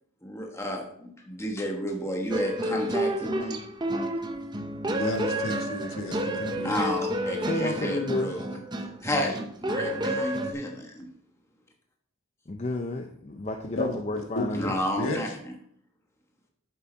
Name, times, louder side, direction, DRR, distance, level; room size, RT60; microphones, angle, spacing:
voice 1, 0.2-3.6 6.6-8.5 9.0-11.1 14.5-15.3, equal, 10° left, 1 dB, 1.2 m, -31 dB
sound 1, 2.3-10.5, right 1 dB, 20° right, 0.6 m, -30 dB
voice 2, 5.0-6.9 13.8-14.0 14.4-15.3, left 1 dB, 65° left, 3 dB, 1.6 m, -32 dB
voice 3, 7.5-8.4 12.5-14.7, left 2 dB, 30° left, 4 dB, 0.5 m, -31 dB
8.9 x 7.3 x 4.0 m, 0.67 s
head